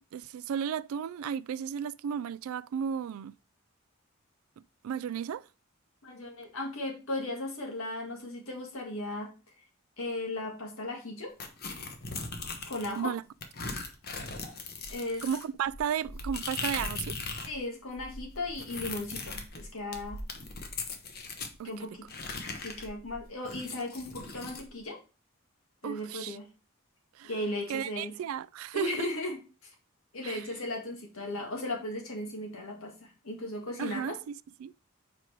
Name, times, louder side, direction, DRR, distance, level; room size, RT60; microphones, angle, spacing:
voice 1, 0.1-3.3 4.8-5.5 13.0-13.2 15.2-17.2 21.6-21.7 25.8-26.4 27.2-27.3 27.7-28.9 30.2-30.4 33.8-34.3 34.6-34.7, right 8 dB, 80° right, 0.3 m, -34 dB
voice 2, 6.0-9.3 10.0-11.3 12.7-13.1 14.9-15.2 17.5-20.2 21.6-22.1 22.6-25.0 25.8-26.5 27.2-28.2 28.7-29.7 30.1-34.2, left 1 dB, 75° left, 1.8 m, -36 dB
sound 1, 11.4-13.0 13.4-17.6 17.8-21.5 22.1-24.7, left 3 dB, 45° left, 1.0 m, -39 dB
5.0 x 4.6 x 4.5 m
head